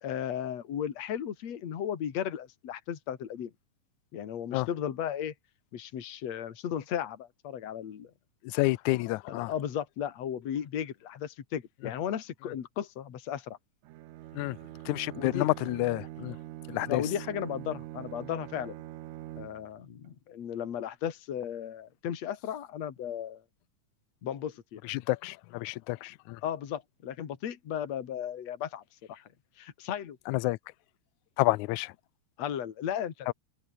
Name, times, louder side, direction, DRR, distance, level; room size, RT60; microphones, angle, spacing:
voice 1, 0.0-3.5 4.1-5.3 5.7-8.1 9.3-13.6 15.2-15.5 16.9-18.8 19.3-23.4 24.2-24.8 26.4-28.8 29.1-29.3 29.6-30.2 32.4-33.3, left 9 dB, 60° left, 3.2 m, -35 dB
voice 2, 8.4-9.5 14.3-14.6 14.9-16.4 16.7-17.0 24.8-26.4 30.3-30.6 31.4-31.9 33.3-33.4, left 20 dB, 75° left, 2.0 m, -29 dB
Bowed string instrument, 13.8-19.8, right 15 dB, 75° right, 2.2 m, -44 dB
omnidirectional pair, 3.6 m